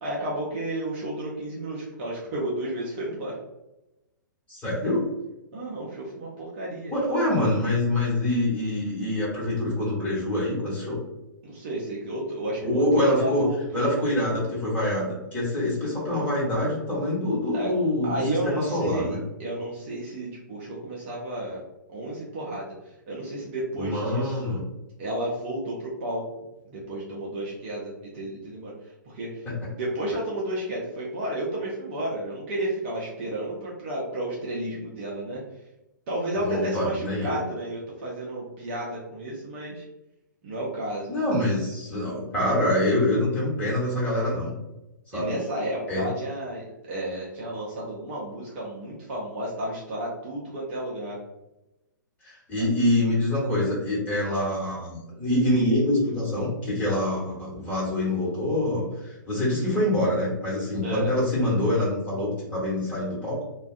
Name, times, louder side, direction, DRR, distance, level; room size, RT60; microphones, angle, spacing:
voice 1, 0.0-3.3 5.5-6.9 11.4-13.9 17.5-17.7 18.0-21.6 21.9-24.6 25.0-26.3 26.7-35.4 36.1-39.8 40.4-41.1 45.1-51.2 60.8-61.1, right 1 dB, 35° right, -4 dB, 0.6 m, -32 dB
voice 2, 4.5-5.1 6.9-11.0 12.6-13.5 13.7-19.2 23.8-24.6 29.4-29.6 36.4-37.4 41.1-44.5 45.1-45.3 45.9-46.1 52.2-63.4, left 1 dB, 15° left, -7 dB, 1.2 m, -25 dB
2.4 x 2.2 x 2.4 m, 0.95 s
figure-of-eight pair, 115°, 11 cm